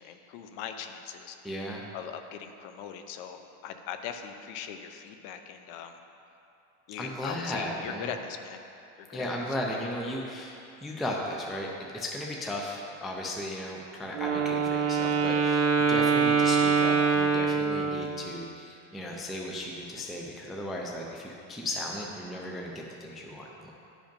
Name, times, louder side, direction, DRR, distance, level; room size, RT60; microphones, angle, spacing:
voice 1, 0.0-1.4 1.9-6.0 6.9-8.6 9.0-9.3, left 8 dB, 55° left, 7 dB, 0.7 m, -40 dB
voice 2, 1.4-1.8 7.0-8.1 9.1-23.7, left 1 dB, ahead, -2 dB, 0.3 m, -36 dB
Wind instrument woodwind instrument, 14.1-18.2, right 5 dB, 75° right, 1.1 m, -24 dB
11.5 x 5.2 x 5.2 m, 2.7 s
supercardioid pair, 155°, 36 cm